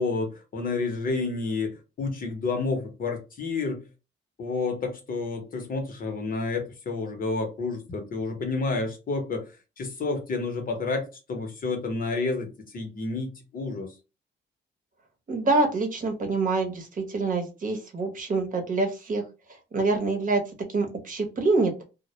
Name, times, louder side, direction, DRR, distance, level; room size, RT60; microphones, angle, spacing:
voice 1, 0.0-3.8 4.4-9.4 9.8-13.9, left 3 dB, 45° left, 0.8 m, -30 dB
voice 2, 15.3-19.2 19.7-20.4 20.7-21.8, right 3 dB, 40° right, 0.8 m, -26 dB
2.1 x 2.1 x 2.8 m
cardioid pair, 90°, 20 cm